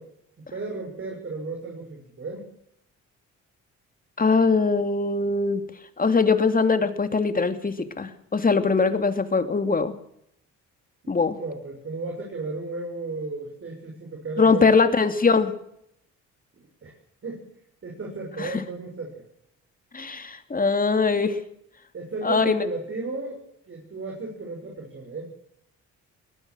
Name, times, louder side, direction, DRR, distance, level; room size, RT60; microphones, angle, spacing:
voice 1, 0.4-2.4 11.0-14.8 16.8-16.9 17.2-17.5 17.8-19.2 21.9-23.4 23.7-25.3, right 3 dB, 45° right, 0 dB, 7.0 m, -34 dB
voice 2, 4.2-5.6 6.0-9.9 11.1-11.4 14.4-15.5 18.4-18.5 19.9-21.4 22.2-22.7, left 4 dB, 30° left, 9 dB, 2.8 m, -21 dB
22.5 x 18.5 x 6.5 m, 0.73 s
cardioid pair, 90°, 30 cm